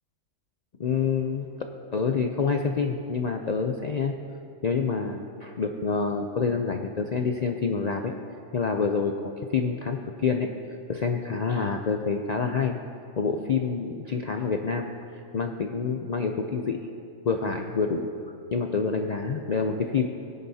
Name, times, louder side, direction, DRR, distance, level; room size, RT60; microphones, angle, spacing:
voice 1, 0.8-1.5 1.9-4.2 4.6-8.1 8.5-9.2 9.5-10.5 10.9-12.8 13.2-14.9 15.3-16.8 17.2-18.1 18.5-20.1, left 5 dB, 80° left, 4 dB, 0.3 m, -27 dB
18.0 x 11.0 x 2.8 m, 2.6 s
omnidirectional pair, 1.4 m